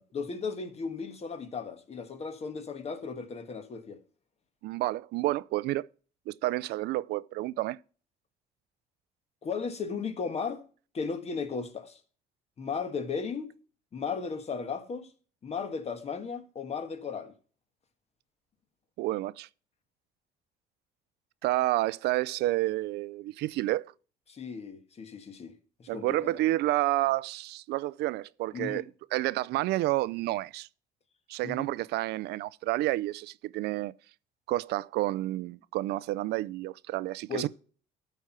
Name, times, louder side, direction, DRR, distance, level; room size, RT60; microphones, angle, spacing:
voice 1, 0.1-4.0 9.4-10.6 10.9-12.0 12.6-13.5 13.9-15.1 15.4-17.3 24.3-25.5 25.8-26.4 28.5-28.8 31.4-31.7 37.3-37.5, left 5 dB, 40° left, 1.5 m, -35 dB
voice 2, 4.6-5.9 6.3-7.8 19.0-19.5 21.4-23.9 25.9-28.8 29.1-30.7 31.3-33.9 34.5-37.5, right 17 dB, 80° right, 0.4 m, -30 dB
13.0 x 4.6 x 5.9 m
cardioid pair, 110°, 17 cm